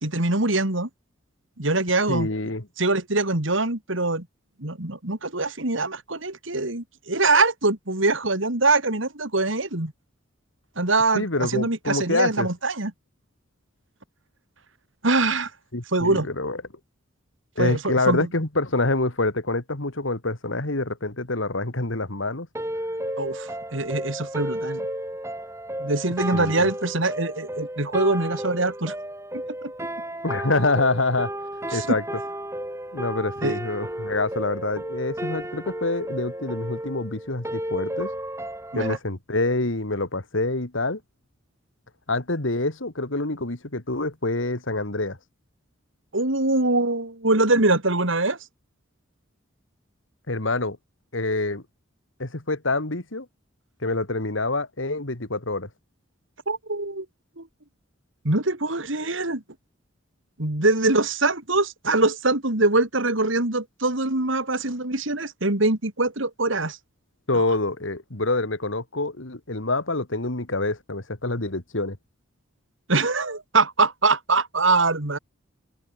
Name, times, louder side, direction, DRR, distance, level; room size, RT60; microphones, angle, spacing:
voice 1, 0.0-0.9 1.6-2.3 2.8-4.3 4.6-9.9 10.8-12.9 15.0-15.5 15.9-16.3 17.6-18.2 23.2-24.8 25.8-28.9 29.6-29.7 31.7-32.0 33.4-33.6 38.7-39.0 46.1-48.4 56.5-57.1 57.4-57.5 58.2-59.4 60.4-66.8 67.3-67.4 72.9-75.2, right 2 dB, 70° right, 3.0 m, -23 dB
voice 2, 2.1-2.7 11.1-12.5 15.7-16.6 17.6-22.5 26.3-26.7 30.2-31.3 31.7-32.0 32.9-38.1 38.7-41.0 42.1-45.2 50.3-50.8 51.1-51.6 52.2-53.3 53.8-55.7 67.3-72.0, left 2 dB, 70° left, 2.3 m, -26 dB
sound 1, 22.5-39.0, right 1 dB, 15° right, 5.0 m, -33 dB
open air
head